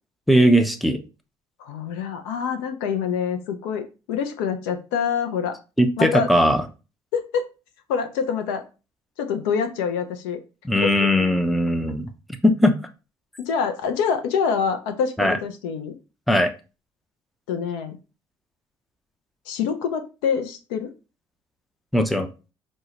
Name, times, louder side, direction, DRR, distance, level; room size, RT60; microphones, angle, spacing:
voice 1, 0.3-1.0 5.8-6.6 10.6-12.1 12.4-12.7 15.2-15.4 16.3-16.5 21.9-22.3, equal, ahead, 7 dB, 0.5 m, -19 dB
voice 2, 1.6-5.5 6.0-6.3 7.1-7.4 7.9-8.6 9.2-10.4 10.8-11.1 13.4-16.0 17.5-18.0 19.5-20.9, left 6 dB, 60° left, 7 dB, 0.4 m, -26 dB
4.4 x 2.1 x 3.0 m, 0.31 s
figure-of-eight pair, 50°, 12 cm